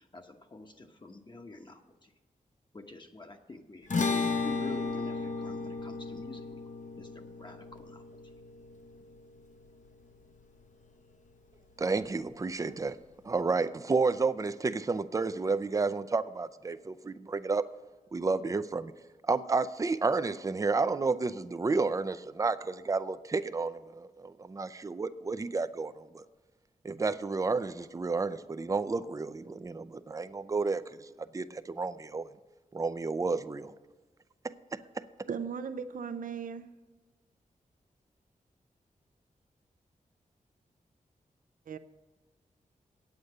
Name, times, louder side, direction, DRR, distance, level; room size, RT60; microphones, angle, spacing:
voice 1, 0.0-2.1 2.7-6.5 7.0-8.0, left 2 dB, 35° left, 4 dB, 1.0 m, -48 dB
sound 1, 3.9-10.4, left 4 dB, 60° left, 0.9 m, -35 dB
voice 2, 11.8-13.0 13.2-17.7 18.1-18.9 19.2-26.2 26.8-32.3 32.7-33.7 34.7-35.0, right 4 dB, 25° right, 13 dB, 0.4 m, -31 dB
voice 3, 35.3-36.7 41.7-41.8, right 6 dB, 75° right, 11 dB, 0.5 m, -37 dB
8.6 x 8.1 x 6.6 m, 1.3 s
wide cardioid pair, 85°, 14 cm